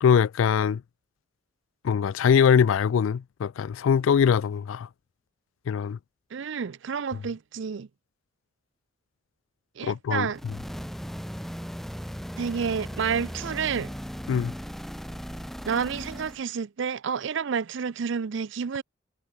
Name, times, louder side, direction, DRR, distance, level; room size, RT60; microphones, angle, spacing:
voice 1, 0.0-0.8 1.8-4.9 5.7-6.0 9.8-10.5 14.3-14.5, left 7 dB, 85° left, 0.3 m, -22 dB
voice 2, 6.3-7.9 9.8-10.4 12.4-13.9 15.7-18.8, right 6 dB, 65° right, 0.5 m, -29 dB
sound 1, 10.3-16.4, equal, ahead, 1.8 m, -37 dB
head